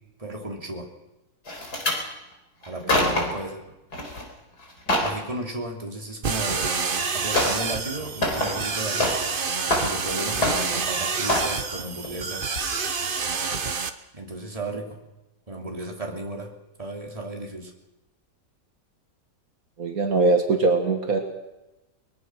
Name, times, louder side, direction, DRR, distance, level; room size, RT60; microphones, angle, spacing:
voice 1, 0.2-0.9 2.7-3.6 5.0-6.8 7.1-9.1 9.8-12.7 14.1-14.9 15.5-16.5 16.8-17.7, right 1 dB, 20° right, 1 dB, 3.1 m, -34 dB
sound 1, 1.5-2.0 2.6-3.4 3.9-4.2 4.6-5.2 6.5-6.6 7.3-7.7 8.0-9.4 9.6-10.1 10.4-10.9 11.3-11.6 12.0-12.2 12.6-12.7, left 1 dB, 75° left, 4.5 m, -25 dB
voice 2, 2.9-3.2 19.8-21.2, right 3 dB, 60° right, 3 dB, 2.3 m, -22 dB
sound 2, 6.2-13.9, right 5 dB, 35° right, 1.1 m, -28 dB
22.5 x 21.0 x 6.3 m, 0.96 s
omnidirectional pair, 1.7 m